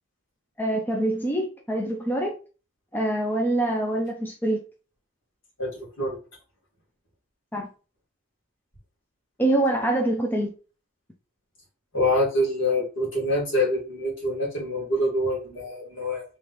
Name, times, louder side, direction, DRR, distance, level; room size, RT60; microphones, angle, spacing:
voice 1, 0.6-2.4 2.9-4.6 7.5-7.7 9.4-10.5, right 1 dB, 10° left, 0.5 m, -25 dB
voice 2, 5.6-6.2 11.9-16.2, left 1 dB, 60° left, 1.8 m, -25 dB
3.2 x 3.1 x 3.9 m
head